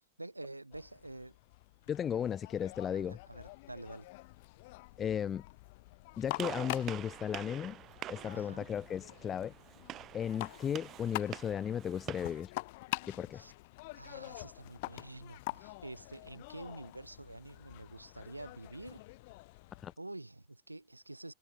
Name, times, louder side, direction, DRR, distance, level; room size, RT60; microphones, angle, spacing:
voice 1, 0.2-1.4 2.9-4.1 8.3-8.6 13.3-13.5 13.9-19.0 20.0-21.3, right 2 dB, 85° right, 3.8 m, -48 dB
sound 1, 0.7-19.9, left 23 dB, 50° left, 1.3 m, -46 dB
voice 2, 1.9-3.2 5.0-5.4 6.2-7.8 8.1-9.5 10.1-12.5 13.1-13.4 19.8-19.9, left 8 dB, 25° left, 1.3 m, -35 dB
Gunshot gunfire, 6.4-12.4, right 13 dB, 30° right, 4.9 m, -46 dB
figure-of-eight pair, 90°, 0 cm